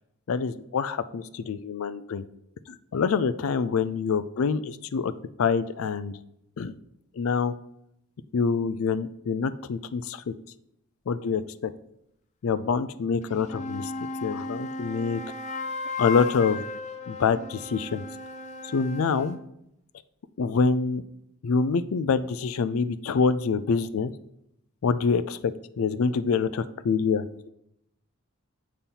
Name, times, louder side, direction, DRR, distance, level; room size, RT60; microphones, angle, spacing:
voice 1, 0.3-2.2 2.7-5.1 5.4-6.2 6.6-6.7 7.2-7.5 8.3-10.3 11.1-11.7 12.4-13.9 14.2-15.2 16.0-16.6 17.1-18.0 18.7-19.4 20.4-21.0 21.4-24.1 24.8-25.4 25.8-27.5, left 5 dB, 75° left, 14 dB, 0.4 m, -26 dB
sound 1, 13.2-19.4, left 3 dB, 35° left, 0.6 m, -35 dB
7.1 x 4.2 x 5.5 m, 0.78 s
head